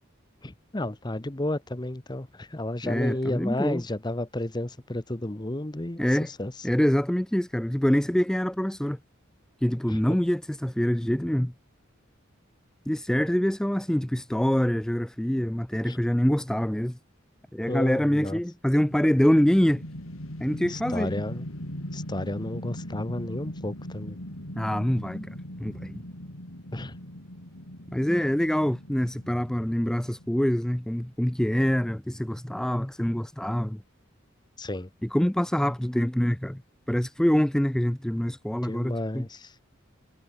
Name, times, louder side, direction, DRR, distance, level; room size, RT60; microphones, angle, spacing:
voice 1, 0.4-6.5 9.9-10.2 15.9-16.0 17.7-18.4 20.7-21.5 21.9-24.2 26.7-27.0 34.6-34.9 38.5-39.5, left 1 dB, 20° left, 1.0 m, -32 dB
voice 2, 2.8-3.8 6.0-6.3 6.6-9.0 9.6-11.5 12.9-17.0 17.5-19.8 20.4-21.2 24.6-26.0 27.9-33.8 35.0-36.6 36.9-39.3, equal, 5° left, 0.3 m, -25 dB
sound 1, 18.8-30.9, equal, 90° left, 6.9 m, -40 dB
head